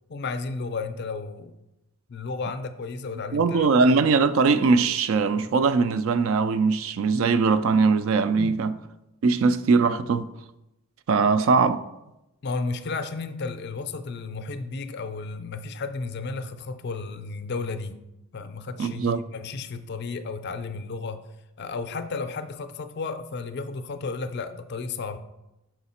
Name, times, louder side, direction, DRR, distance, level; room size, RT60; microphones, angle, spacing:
voice 1, 0.1-1.6 2.1-3.7 8.3-8.6 12.4-18.0 18.3-21.2 21.6-25.2, left 4 dB, 50° left, 0.4 m, -33 dB
voice 2, 3.3-8.7 9.2-10.3 11.1-11.8 18.8-19.2, right 4 dB, 65° right, 0.3 m, -21 dB
6.0 x 4.8 x 4.2 m
head